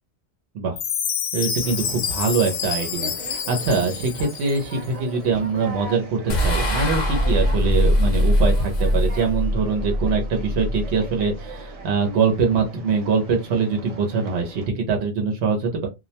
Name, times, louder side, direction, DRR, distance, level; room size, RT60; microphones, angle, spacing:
Chime, 0.8-4.8, left 7 dB, 80° left, 0.8 m, -28 dB
voice 1, 1.3-15.9, right 4 dB, 75° right, 3 dB, 0.9 m, -23 dB
Conversation, 1.6-14.7, right 4 dB, 40° right, 0.6 m, -40 dB
sound 1, 6.3-11.7, equal, 45° left, 0.7 m, -22 dB
2.3 x 2.0 x 2.7 m, 0.22 s
omnidirectional pair, 1.1 m